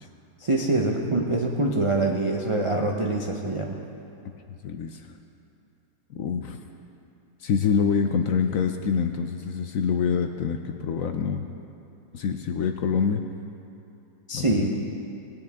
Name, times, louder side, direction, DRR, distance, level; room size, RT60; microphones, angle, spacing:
voice 1, 0.4-3.8 14.3-14.7, right 2 dB, 50° right, -1 dB, 0.3 m, -24 dB
voice 2, 4.6-5.1 6.1-6.6 7.4-11.4 12.1-13.2 14.3-14.8, left 6 dB, 65° left, 6 dB, 0.8 m, -26 dB
19.5 x 9.6 x 3.5 m, 2.7 s
omnidirectional pair, 1.8 m